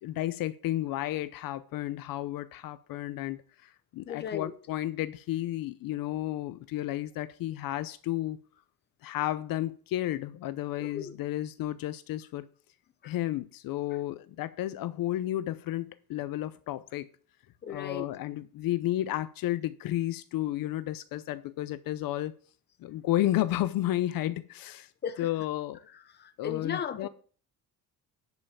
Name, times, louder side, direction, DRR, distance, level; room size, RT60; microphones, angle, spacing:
voice 1, 0.0-8.4 9.0-12.5 13.0-17.1 17.7-22.3 22.8-24.9 25.2-25.8 26.4-27.1, left 14 dB, 65° left, 0.7 m, -32 dB
voice 2, 4.0-4.5 10.8-11.1 13.0-13.1 17.6-18.1 25.0-25.3 25.9-27.1, left 7 dB, 30° left, 1.0 m, -36 dB
10.5 x 5.5 x 7.2 m
cardioid pair, 180°, 36 cm